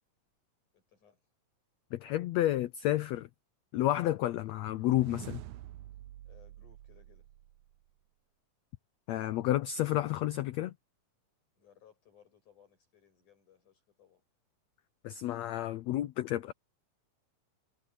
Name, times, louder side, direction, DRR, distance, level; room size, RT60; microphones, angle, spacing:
voice 1, 0.7-1.2 6.2-7.3 11.6-14.2, left 8 dB, 60° left, 9.5 m, -63 dB
voice 2, 1.9-3.3 3.7-5.4 9.1-10.7 15.0-16.5, left 14 dB, 90° left, 1.5 m, -30 dB
sound 1, 4.6-7.9, right 15 dB, 75° right, 2.0 m, -48 dB
omnidirectional pair, 3.9 m